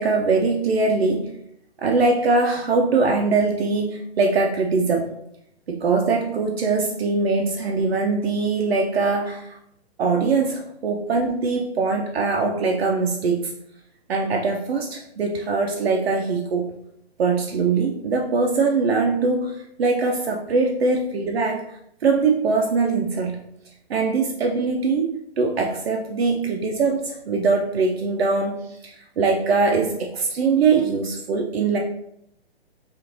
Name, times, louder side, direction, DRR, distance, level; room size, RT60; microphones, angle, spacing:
voice 1, 0.0-1.4 1.8-5.1 5.7-9.6 10.0-13.5 14.1-16.7 17.2-23.5 23.9-31.8, right 4 dB, 70° right, 1 dB, 0.5 m, -22 dB
3.8 x 2.5 x 3.0 m, 0.76 s
hypercardioid pair, 170°, 32 cm